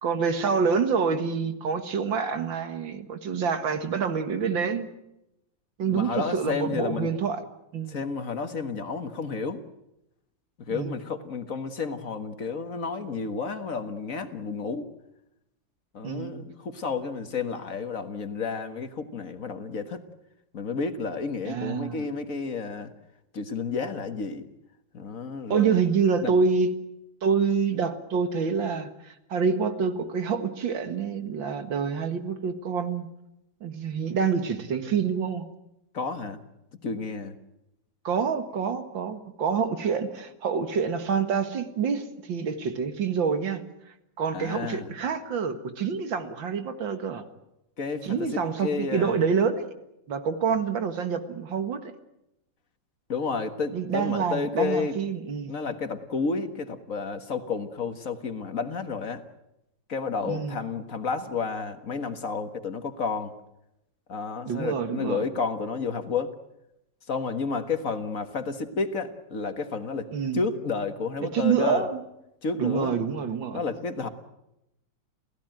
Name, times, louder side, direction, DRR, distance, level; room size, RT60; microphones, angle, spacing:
voice 1, 0.0-4.9 5.8-7.4 7.7-8.0 10.7-11.0 16.0-16.3 21.5-22.1 25.5-26.7 27.2-33.1 33.6-35.5 38.0-43.6 44.2-47.2 48.0-49.7 50.1-51.9 53.7-55.5 60.3-60.6 64.5-65.3 70.1-70.4 71.3-72.0 72.6-73.6, right 6 dB, 90° right, 9 dB, 2.5 m, -27 dB
voice 2, 5.9-7.1 7.9-9.6 10.6-14.9 15.9-20.0 20.5-22.9 23.3-24.4 24.9-25.8 26.2-26.4 35.9-36.4 36.8-37.4 44.3-44.9 47.8-49.2 53.1-55.0 55.5-59.2 59.9-63.3 64.1-66.3 67.1-71.9 72.4-72.9 73.5-74.1, left 5 dB, 50° left, 9 dB, 1.8 m, -31 dB
28.5 x 16.0 x 9.1 m, 0.87 s
omnidirectional pair, 2.0 m